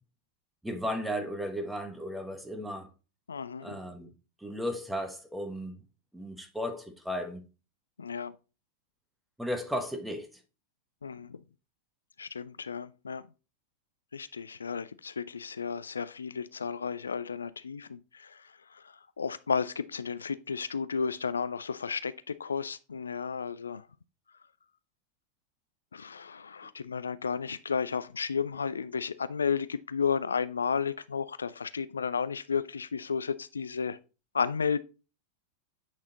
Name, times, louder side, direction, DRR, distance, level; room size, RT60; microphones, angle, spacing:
voice 1, 0.6-2.9 3.6-4.1 4.4-5.8 6.1-7.4 9.4-10.3, equal, 5° right, 1.2 m, -35 dB
voice 2, 3.3-3.8 8.0-8.3 11.0-11.4 12.2-13.2 14.1-23.9 25.9-34.0 34.3-34.8, left 6 dB, 75° left, 0.3 m, -33 dB
8.4 x 4.2 x 3.9 m
figure-of-eight pair, 90°, 0 cm